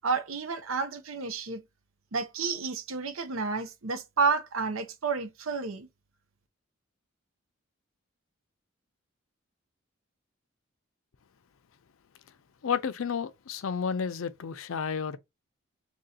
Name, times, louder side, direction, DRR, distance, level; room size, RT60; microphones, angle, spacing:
voice 1, 0.0-1.6 2.1-5.9, right 4 dB, 80° right, 0.7 m, -30 dB
voice 2, 12.6-15.2, left 6 dB, 80° left, 0.5 m, -31 dB
3.0 x 2.8 x 3.9 m
head